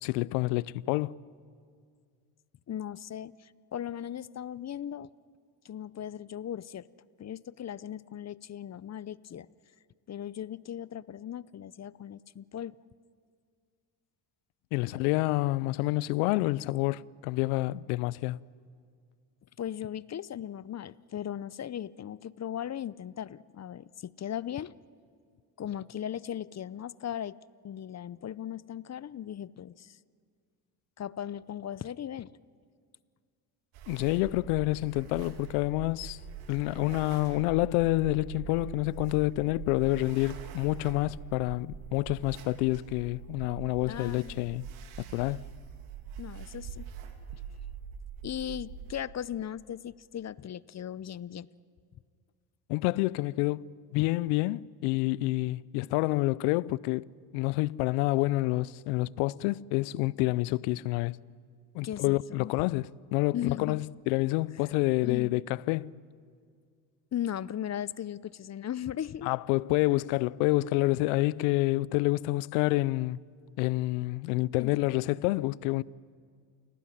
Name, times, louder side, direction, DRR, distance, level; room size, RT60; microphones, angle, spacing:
voice 1, 0.0-1.1 14.7-18.4 33.9-36.2 36.5-44.6 45.1-45.4 52.7-53.7 53.9-57.1 57.3-61.2 61.7-65.9 69.2-73.2 73.6-75.8, left 20 dB, 80° left, 0.7 m, -28 dB
voice 2, 2.7-5.1 5.6-6.9 7.2-9.5 10.1-12.8 19.6-24.7 25.6-27.4 27.6-30.0 31.0-32.4 43.8-44.5 46.2-46.9 47.3-47.4 48.2-51.5 61.8-62.5 63.3-63.8 65.0-65.4 67.1-69.3 74.6-74.7, left 10 dB, 35° left, 0.6 m, -38 dB
sound 1, 33.7-48.9, right 7 dB, 75° right, 3.0 m, -43 dB
28.5 x 18.5 x 10.0 m
supercardioid pair, 75°, 50 cm